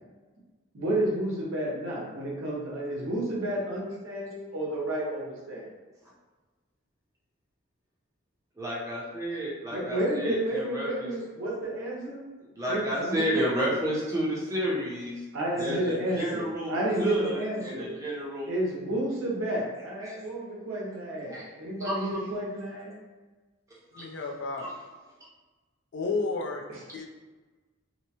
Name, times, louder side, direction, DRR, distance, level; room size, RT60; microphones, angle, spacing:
voice 1, 0.7-5.7 9.7-12.2 12.6-13.4 15.3-17.9 18.4-23.0 26.7-26.8, right 1 dB, 80° right, -4 dB, 0.7 m, -31 dB
voice 2, 8.6-11.1 12.5-15.2 15.6-18.5 20.0-20.2 21.3-21.9 23.9-24.1 24.6-24.7, equal, 15° right, -6 dB, 0.6 m, -31 dB
voice 3, 23.9-24.6 25.9-26.6 26.9-27.1, left 3 dB, 60° left, 2 dB, 0.4 m, -31 dB
2.7 x 2.1 x 2.8 m, 1.3 s
head